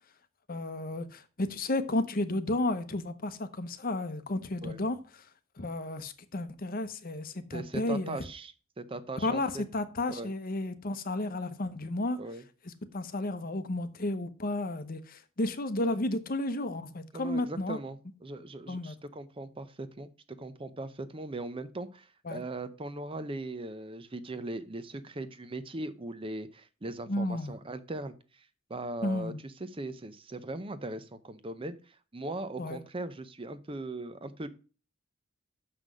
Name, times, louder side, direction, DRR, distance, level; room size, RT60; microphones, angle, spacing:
voice 1, 0.5-5.0 5.6-8.2 9.2-12.2 12.9-17.8 18.7-18.9 22.3-22.4 27.1-27.5 29.0-29.4 32.6-32.8, left 2 dB, 45° left, 0.8 m, -32 dB
voice 2, 7.5-9.6 10.1-10.3 12.2-12.4 17.1-34.5, right 2 dB, 25° right, 0.6 m, -39 dB
6.7 x 5.8 x 6.1 m
head